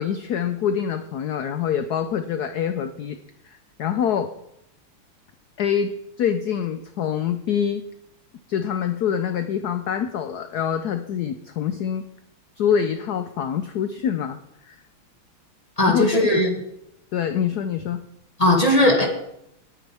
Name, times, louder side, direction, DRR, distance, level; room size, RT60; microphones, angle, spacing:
voice 1, 0.0-3.2 3.4-4.3 5.6-7.8 8.5-12.0 12.6-14.4 14.6-14.8 15.8-16.4 17.1-18.0, left 8 dB, 70° left, 9 dB, 0.9 m, -25 dB
voice 2, 15.8-16.5 18.4-19.1, left 1 dB, 15° left, 0 dB, 2.2 m, -18 dB
19.0 x 9.5 x 3.5 m, 0.78 s
omnidirectional pair, 2.4 m